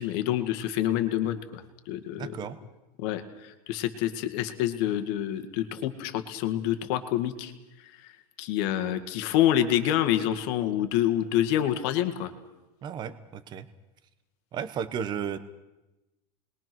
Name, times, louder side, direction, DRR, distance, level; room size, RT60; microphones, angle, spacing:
voice 1, 0.0-2.3 3.0-7.5 8.0-8.1 8.4-12.3, left 12 dB, 45° left, 8 dB, 2.0 m, -27 dB
voice 2, 2.1-2.6 12.8-13.7 14.5-15.4, right 8 dB, 20° right, 13 dB, 1.0 m, -34 dB
29.5 x 21.5 x 6.2 m, 1.0 s
supercardioid pair, 175°, 19 cm